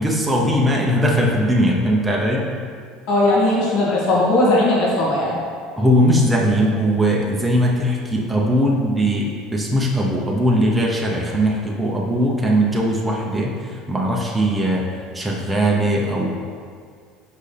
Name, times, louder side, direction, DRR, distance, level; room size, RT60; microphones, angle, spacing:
voice 1, 0.0-2.5 5.8-16.4, equal, 5° right, -3 dB, 0.7 m, -19 dB
voice 2, 3.1-5.4, left 1 dB, 60° left, -6 dB, 1.9 m, -18 dB
8.0 x 5.2 x 3.4 m, 2.1 s
cardioid pair, 155°, 0 cm